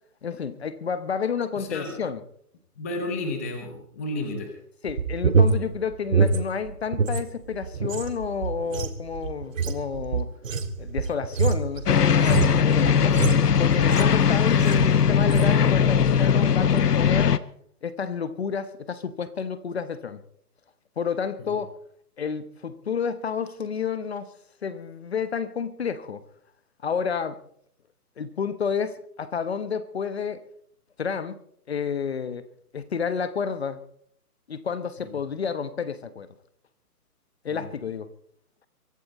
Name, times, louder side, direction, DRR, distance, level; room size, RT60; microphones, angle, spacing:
voice 1, 0.2-2.2 4.8-10.3 10.8-13.2 13.6-17.4 17.8-20.2 21.0-21.7 22.2-24.3 24.6-26.2 26.8-27.4 28.2-30.4 31.0-31.4 31.7-32.4 32.7-33.8 34.5-36.3 37.4-38.1, left 6 dB, 40° left, 1.1 m, -30 dB
voice 2, 1.5-1.9 2.8-4.5 21.4-21.6 35.0-35.1 37.5-37.7, left 2 dB, 10° left, 0.9 m, -32 dB
sound 1, 4.8-7.2 7.5-14.2 14.6-14.9 15.2-15.6, right 5 dB, 55° right, 1.9 m, -25 dB
sound 2, 11.9-17.4, left 7 dB, 80° left, 1.0 m, -20 dB
23.5 x 12.0 x 4.2 m
hypercardioid pair, 165°, 46 cm